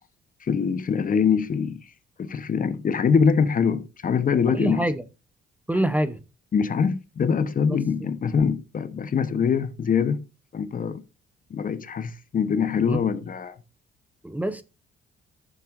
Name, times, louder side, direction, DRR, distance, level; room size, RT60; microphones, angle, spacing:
voice 1, 0.4-1.8 2.2-4.9 6.5-10.2 10.5-11.0 11.5-13.5, left 6 dB, 45° left, 0.9 m, -23 dB
voice 2, 4.6-4.9 5.7-6.2 12.9-13.0 14.2-14.6, right 1 dB, 10° right, 0.7 m, -24 dB
13.0 x 7.2 x 2.5 m
cardioid pair, 90°, 20 cm